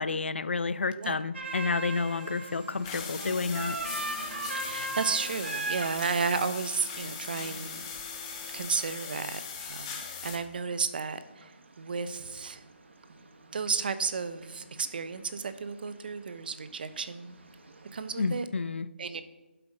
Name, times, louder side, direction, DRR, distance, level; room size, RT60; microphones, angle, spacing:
voice 1, 0.0-3.8 18.2-18.9, left 4 dB, 80° left, 15 dB, 0.6 m, -30 dB
voice 2, 0.9-1.2 4.6-7.8 8.5-12.6 13.1-13.2 13.5-17.4 17.9-18.5 19.0-19.2, right 5 dB, 55° right, 12 dB, 0.9 m, -33 dB
sound 1, 1.3-18.4, right 2 dB, 80° right, 1.6 m, -41 dB
sound 2, 1.4-8.7, right 2 dB, 10° right, 1.4 m, -54 dB
sound 3, 2.8-10.4, left 6 dB, 25° left, 1.4 m, -39 dB
11.5 x 7.9 x 5.1 m, 1.1 s
hypercardioid pair, 165°, 6 cm